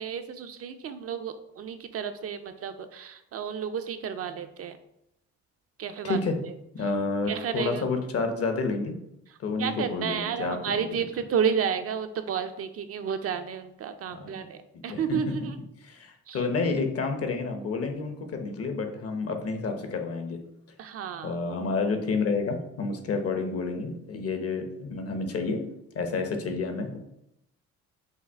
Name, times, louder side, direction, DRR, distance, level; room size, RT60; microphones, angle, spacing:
voice 1, 0.0-4.8 5.8-6.2 7.3-7.8 9.6-14.6 14.8-15.6 16.3-16.4 20.8-21.3, right 7 dB, 50° right, 8 dB, 0.5 m, -31 dB
voice 2, 6.0-6.4 6.7-9.0 9.4-10.7 14.1-14.4 14.7-15.3 15.9-20.4 21.2-25.6 25.9-27.0, left 4 dB, 50° left, 6 dB, 0.8 m, -29 dB
5.5 x 2.4 x 3.4 m, 0.82 s
cardioid pair, 90°, 30 cm